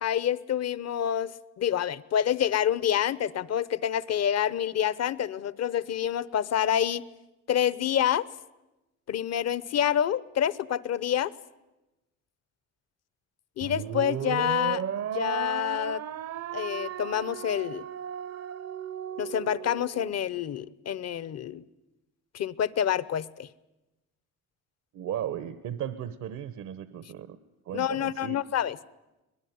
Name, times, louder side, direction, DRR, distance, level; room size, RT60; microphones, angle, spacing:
voice 1, 0.0-7.0 7.5-8.3 9.1-11.3 13.6-14.8 15.1-16.0 16.5-17.9 19.2-21.6 22.3-23.5 27.7-28.8, left 10 dB, 55° left, 19 dB, 0.9 m, -27 dB
sound 1, 13.6-20.1, right 9 dB, 55° right, 0.7 m, -35 dB
voice 2, 24.9-27.4 27.7-28.4, right 10 dB, 75° right, 12 dB, 1.1 m, -36 dB
23.5 x 19.5 x 9.5 m, 1.0 s
cardioid pair, 90°, 30 cm